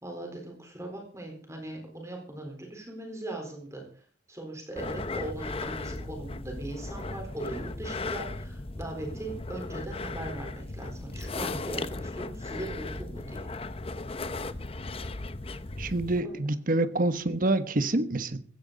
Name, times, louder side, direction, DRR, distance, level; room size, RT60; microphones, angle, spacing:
voice 1, 0.0-3.8 4.3-13.5 16.2-16.4, right 2 dB, 15° right, 4.1 m, -39 dB
sound 1, 4.8-16.2, left 2 dB, 30° left, 0.7 m, -36 dB
voice 2, 15.8-18.4, right 2 dB, 45° right, 1.2 m, -27 dB
16.0 x 15.5 x 4.0 m
head